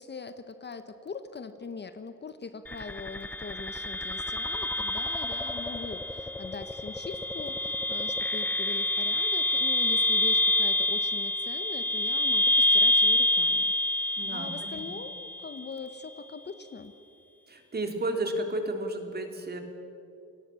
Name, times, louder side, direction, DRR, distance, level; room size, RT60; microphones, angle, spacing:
voice 1, 0.0-16.9, left 4 dB, 35° left, 10 dB, 1.2 m, -42 dB
sound 1, 2.7-15.7, left 2 dB, 5° left, 0.5 m, -27 dB
voice 2, 14.2-14.8 17.5-19.6, right 1 dB, 30° right, 4 dB, 3.4 m, -32 dB
29.0 x 17.5 x 7.1 m, 2.7 s
cardioid pair, 90°, 30 cm